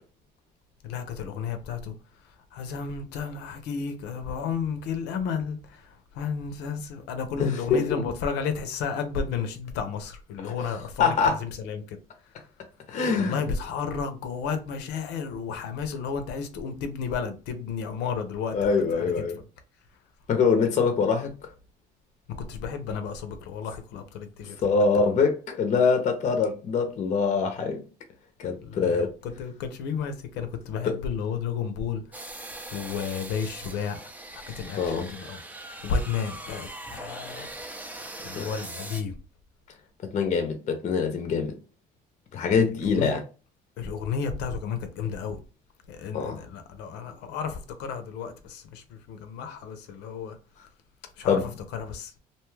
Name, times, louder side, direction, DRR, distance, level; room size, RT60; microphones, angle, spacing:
voice 1, 0.8-1.9 2.5-12.0 13.2-19.1 22.4-25.1 28.6-32.0 32.7-35.4 35.8-37.5 38.0-39.2 42.9-43.1 43.8-45.4 45.9-50.4 51.2-52.1, left 6 dB, 90° left, 0.6 m, -32 dB
voice 2, 7.4-8.0 10.4-10.5 11.0-11.4 12.9-13.4 18.5-19.4 20.3-21.3 24.6-27.8 28.4-29.1 30.8-31.0 34.8-35.1 38.4-38.5 40.1-41.5 42.3-43.2 46.1-46.4 51.3-51.5, left 5 dB, 45° left, 0.6 m, -24 dB
sound 1, 32.1-39.0, right 1 dB, 10° right, 0.5 m, -41 dB
2.7 x 2.3 x 3.1 m
cardioid pair, 110°, 17 cm